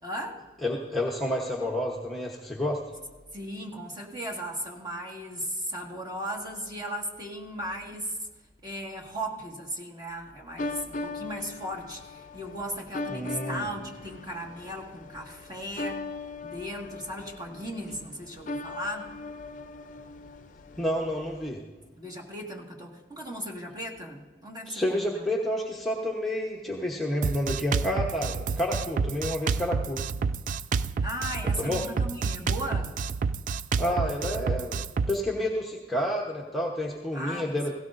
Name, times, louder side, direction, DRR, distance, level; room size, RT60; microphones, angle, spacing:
voice 1, 0.0-0.4 3.3-8.2 8.6-16.0 16.4-19.1 22.0-25.2 31.0-33.0 37.1-37.5, equal, 20° right, -1 dB, 1.8 m, -37 dB
voice 2, 0.6-2.8 13.1-13.7 20.8-21.6 24.7-30.0 31.6-31.8 33.8-37.8, left 1 dB, ahead, -2 dB, 1.0 m, -29 dB
sound 1, 10.6-21.5, left 3 dB, 45° left, 0.5 m, -39 dB
Drum kit, 27.2-35.2, right 5 dB, 45° right, 0.3 m, -29 dB
17.0 x 17.0 x 2.6 m, 1.2 s
head